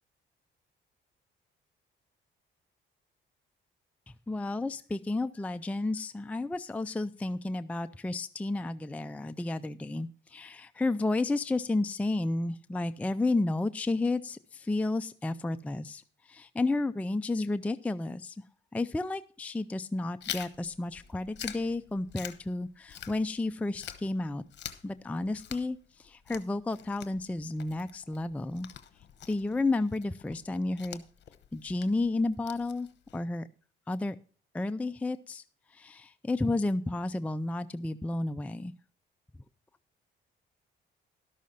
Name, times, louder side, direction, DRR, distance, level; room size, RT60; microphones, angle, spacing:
voice 1, 4.3-18.4 18.7-24.4 24.8-28.7 29.3-31.0 31.5-32.9 33.1-33.5 33.9-34.2 34.5-35.4 35.7-38.7, left 2 dB, 5° left, 10 dB, 0.4 m, -32 dB
Chewing mastication, 20.2-23.5 23.8-33.2, left 10 dB, 60° left, 1.0 m, -45 dB
12.5 x 6.3 x 5.5 m, 0.42 s
cardioid pair, 90°, 20 cm